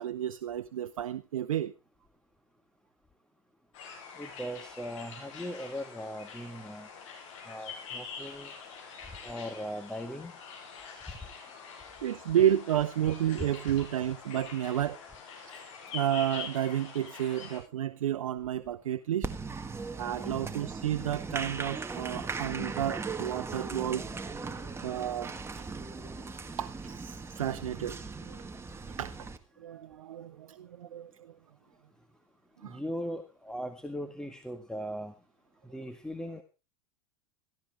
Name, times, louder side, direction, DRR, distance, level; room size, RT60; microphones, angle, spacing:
voice 1, 0.0-1.7 12.0-15.0 15.5-15.6 15.9-19.3 20.0-24.0 24.8-25.6 26.6-28.0 28.3-28.4 29.0-29.3 29.6-31.3 32.6-32.8, right 11 dB, 85° right, 8 dB, 0.8 m, -31 dB
sound 1, 3.7-17.6, left 6 dB, 70° left, 7.3 m, -45 dB
voice 2, 4.2-6.9 7.5-8.5 9.2-10.3 32.6-35.1 35.6-36.4, equal, 5° left, 6 dB, 1.7 m, -39 dB
Applause, 19.2-29.4, right 4 dB, 15° right, 1.7 m, -38 dB
17.0 x 14.5 x 3.6 m, 0.31 s
hypercardioid pair, 100°, 17 cm